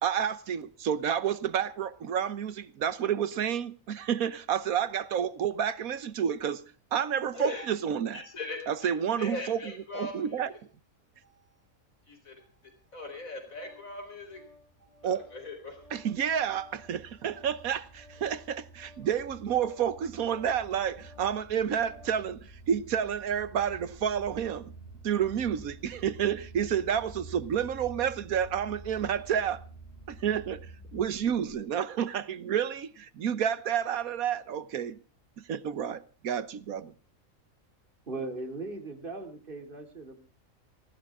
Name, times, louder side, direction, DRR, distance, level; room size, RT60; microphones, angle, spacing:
voice 1, 0.0-6.6 6.9-8.2 8.7-10.5 15.0-15.3 15.9-24.7 25.0-29.6 30.1-30.7 30.9-35.0 35.4-36.9, right 8 dB, 80° right, 1.4 m, -30 dB
voice 2, 7.3-7.7 8.1-10.6 11.2-11.4 12.1-14.4 14.8-15.8, left 2 dB, 70° left, 4.5 m, -40 dB
Organ, 13.4-22.3, left 3 dB, 25° left, 4.7 m, -58 dB
sound 1, 14.1-31.6, right 3 dB, 50° left, 4.8 m, -49 dB
voice 3, 38.1-40.2, right 3 dB, 35° right, 3.0 m, -38 dB
19.5 x 17.0 x 3.6 m
omnidirectional pair, 1.5 m